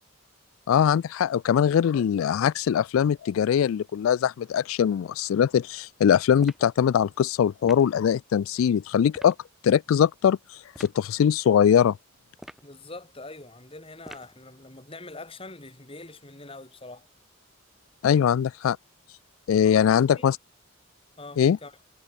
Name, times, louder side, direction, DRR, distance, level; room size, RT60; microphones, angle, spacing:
voice 1, 0.7-9.3 9.6-12.0 18.0-18.8 19.5-20.4 21.4-21.6, left 8 dB, 80° left, 0.3 m, -22 dB
sound 1, 6.4-6.7 7.7-7.9 9.1-9.4 10.7-11.0 12.3-12.7 14.0-14.4, equal, ahead, 1.2 m, -45 dB
voice 2, 12.6-17.1 19.9-20.3 21.2-21.8, left 2 dB, 25° left, 2.5 m, -44 dB
head